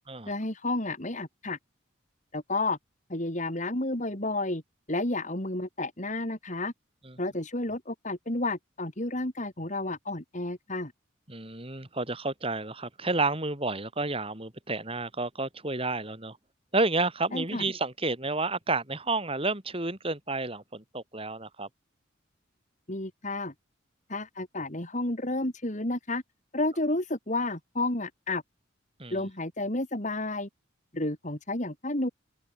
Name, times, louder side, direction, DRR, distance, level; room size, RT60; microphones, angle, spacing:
voice 1, 0.3-1.6 2.3-2.8 3.1-4.6 4.9-6.7 7.2-10.9 17.3-17.7 22.9-23.5 24.1-26.2 26.5-28.4 29.1-30.5 30.9-32.1, left 2 dB, 35° left, 3.3 m, -31 dB
voice 2, 11.3-16.4 16.7-21.7 29.0-29.1, right 3 dB, 30° right, 4.5 m, -30 dB
open air
head